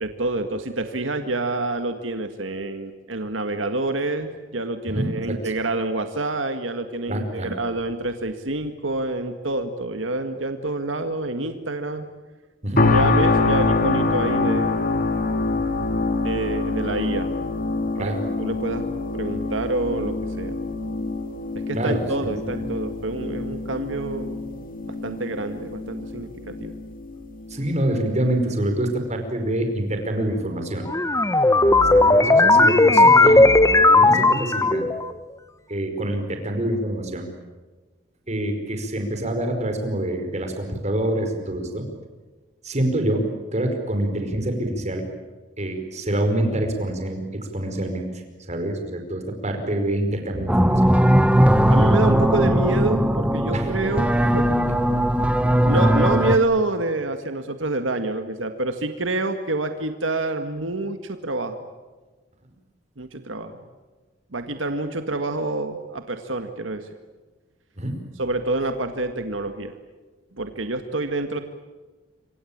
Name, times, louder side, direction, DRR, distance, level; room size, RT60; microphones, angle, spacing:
voice 1, 0.0-12.1 12.9-14.9 16.2-17.3 18.0-18.1 18.4-18.9 19.1-20.6 21.7-24.5 24.9-26.7 51.7-54.6 55.6-61.6 63.0-63.6 64.3-66.9 68.2-69.7 70.4-71.4, right 2 dB, 85° right, 7 dB, 1.8 m, -27 dB
voice 2, 7.1-7.5 12.6-12.8 18.0-18.2 21.7-22.0 27.5-30.8 31.9-33.5 33.9-34.9 35.7-37.3 38.3-41.9 42.6-45.0 45.6-47.2 47.5-48.0 48.5-50.9 53.5-53.7 67.8-67.9, right 1 dB, 35° right, 5 dB, 5.1 m, -26 dB
sound 1, 12.8-27.8 28.3-28.4, left 3 dB, 45° left, 3.0 m, -25 dB
sound 2, 30.9-35.1, left 2 dB, 15° left, 1.1 m, -15 dB
sound 3, 50.5-56.4, equal, 5° right, 1.4 m, -18 dB
27.0 x 25.0 x 8.8 m, 1.3 s
head